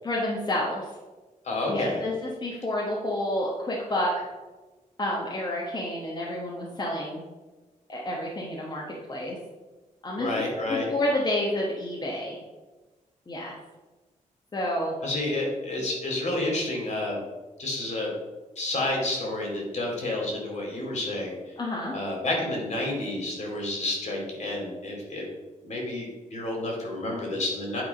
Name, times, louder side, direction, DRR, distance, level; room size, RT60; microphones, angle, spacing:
voice 1, 0.0-0.9 1.7-4.3 5.0-7.2 7.9-9.4 10.0-10.4 10.7-12.4 13.3-13.6 14.5-14.9 21.6-21.9, left 1 dB, 30° left, -3 dB, 1.2 m, -29 dB
voice 2, 1.4-2.0 10.2-10.9 15.0-17.2 17.6-18.1 18.6-21.3 21.9-25.2 25.6-27.8, left 2 dB, 55° left, -1 dB, 2.4 m, -30 dB
8.7 x 3.6 x 5.2 m, 1.2 s
cardioid pair, 110°, 14 cm